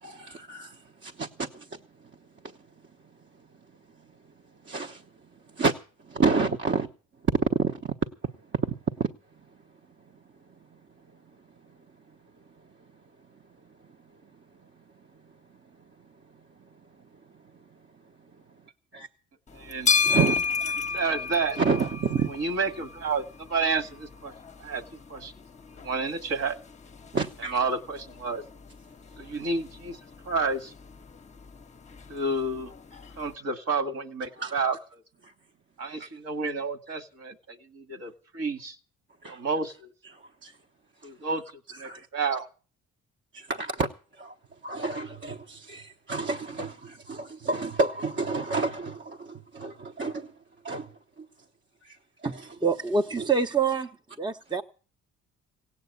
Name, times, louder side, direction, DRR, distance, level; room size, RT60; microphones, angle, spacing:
voice 1, 0.0-2.1 2.4-2.6 4.6-5.1 5.5-5.7 6.0-6.9 7.2-7.9 8.2-9.1 10.7-10.8 17.3-17.4 18.9-19.1 20.0-21.0 21.6-22.3 27.1-27.6 34.4-34.5 35.2-35.3 36.0-36.1 36.9-37.0 39.2-39.4 40.0-40.6 41.3-41.4 41.7-42.4 43.3-44.3 44.6-50.3 50.6-51.3 51.8-52.5 53.2-53.3, right 4 dB, 40° right, 1.0 m, -30 dB
sound 1, 19.5-33.3, left 5 dB, 25° left, 0.9 m, -34 dB
voice 2, 19.5-19.9 20.9-21.6 22.3-24.3 24.6-24.8 25.1-25.3 25.8-26.6 27.5-28.4 29.2-30.0 30.3-30.7 32.1-32.7 33.2-34.8 35.8-38.8 39.3-39.9 41.0-41.4 41.8-42.5, right 4 dB, 55° right, 2.0 m, -30 dB
voice 3, 52.2-53.9 54.2-54.6, right 5 dB, 15° right, 0.8 m, -26 dB
17.0 x 8.3 x 8.3 m
cardioid pair, 90°, 30 cm